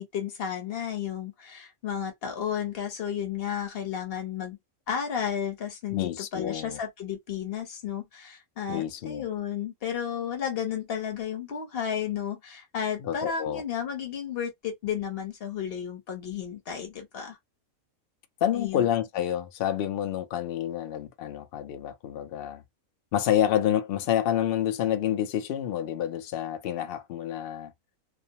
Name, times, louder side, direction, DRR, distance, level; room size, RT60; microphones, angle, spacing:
voice 1, 0.0-4.6 4.9-17.4 18.5-18.9, left 8 dB, 50° left, 0.9 m, -33 dB
voice 2, 5.9-6.8 8.7-9.3 13.0-13.6 18.4-22.6 23.1-27.7, left 11 dB, 90° left, 0.5 m, -28 dB
2.5 x 2.1 x 2.7 m
omnidirectional pair, 1.5 m